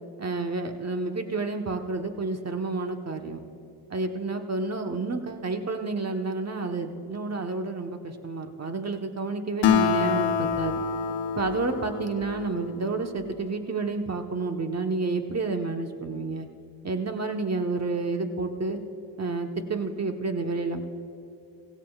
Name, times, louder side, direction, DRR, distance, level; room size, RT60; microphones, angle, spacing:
voice 1, 0.2-3.4 3.9-10.8 11.4-16.5 16.8-18.8 19.2-20.9, right 3 dB, 40° right, 5 dB, 1.2 m, -30 dB
Acoustic guitar, 9.6-13.3, left 7 dB, 75° left, 0.9 m, -27 dB
16.5 x 16.5 x 2.4 m, 2.5 s
supercardioid pair, 45°, 41 cm